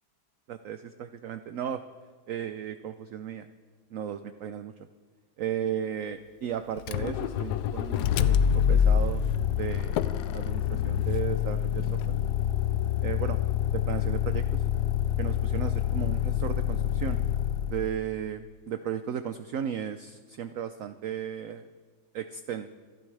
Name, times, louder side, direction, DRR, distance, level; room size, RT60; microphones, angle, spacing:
voice 1, 0.5-1.8 2.3-3.5 3.9-4.7 5.4-9.2 9.5-12.0 13.0-13.4 13.7-14.6 15.2-17.2 17.7-21.7 22.1-22.7, right 9 dB, 70° right, 10 dB, 0.7 m, -35 dB
Motor vehicle (road), 6.8-18.0, left 9 dB, 75° left, 1.1 m, -26 dB
27.0 x 12.0 x 3.3 m, 1.4 s
omnidirectional pair, 1.9 m